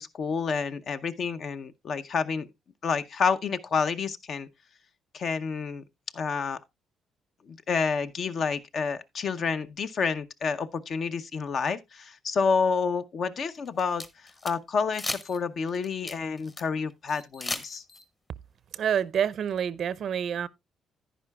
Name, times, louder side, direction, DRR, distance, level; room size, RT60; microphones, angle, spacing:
voice 1, 0.0-2.5 2.8-4.5 5.1-5.8 6.1-6.6 7.5-17.8, left 5 dB, 55° left, 0.7 m, -29 dB
sound 1, 13.5-14.5 14.9-15.4 15.7-16.6 17.1-18.0, left 2 dB, 25° left, 1.0 m, -36 dB
voice 2, 18.8-20.5, right 8 dB, 60° right, 0.5 m, -27 dB
10.5 x 10.0 x 2.3 m
cardioid pair, 90°, 0 cm